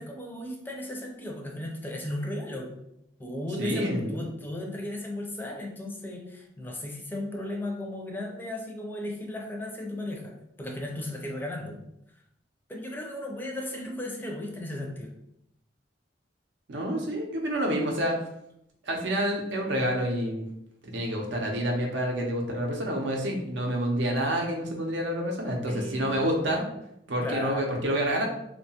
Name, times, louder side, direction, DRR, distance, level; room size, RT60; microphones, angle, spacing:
voice 1, 0.0-2.8 3.2-10.3 10.6-11.8 12.7-15.1 25.7-26.3 27.2-27.7, left 1 dB, 10° left, 0 dB, 0.4 m, -35 dB
voice 2, 3.6-4.2 16.7-18.2 18.8-20.5 20.8-26.6 27.1-28.3, equal, 85° right, 1 dB, 0.6 m, -28 dB
2.7 x 2.2 x 2.8 m, 0.80 s
head